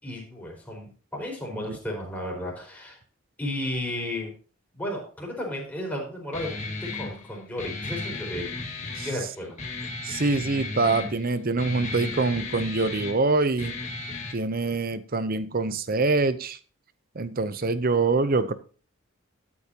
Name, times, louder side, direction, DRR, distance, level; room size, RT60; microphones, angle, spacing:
voice 1, 0.0-3.0 3.4-4.3 4.7-8.5 8.8-9.5, left 1 dB, 10° left, -2 dB, 4.5 m, -34 dB
Guitar, 6.3-14.3, left 3 dB, 35° left, 1.8 m, -35 dB
voice 2, 10.0-13.8 14.3-16.6 17.2-18.5, right 3 dB, 45° right, 13 dB, 0.7 m, -25 dB
13.0 x 8.6 x 2.9 m, 0.39 s
head